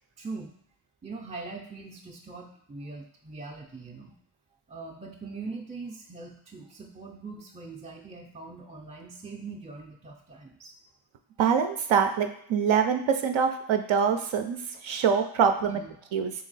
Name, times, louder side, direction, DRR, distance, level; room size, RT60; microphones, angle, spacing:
voice 1, 0.2-0.5 1.0-4.2 4.7-10.7 15.6-16.0, right 3 dB, 15° right, 0 dB, 0.4 m, -42 dB
voice 2, 11.4-15.8 16.1-16.3, right 7 dB, 75° right, 6 dB, 0.5 m, -25 dB
3.0 x 2.9 x 4.0 m, 0.69 s
cardioid pair, 60°, 48 cm